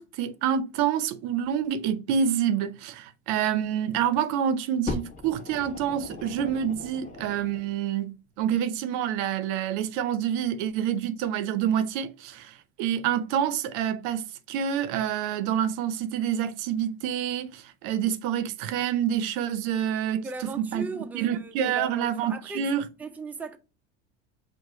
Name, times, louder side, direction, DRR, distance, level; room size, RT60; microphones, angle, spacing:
voice 1, 0.0-20.9 21.1-22.9, right 9 dB, 70° right, 0.6 m, -27 dB
Fire, 4.9-7.7 8.5-8.6, left 2 dB, 25° left, 1.0 m, -38 dB
voice 2, 20.2-22.7 23.0-23.6, right 3 dB, 5° right, 0.4 m, -37 dB
4.7 x 2.1 x 3.6 m
supercardioid pair, 95°, 32 cm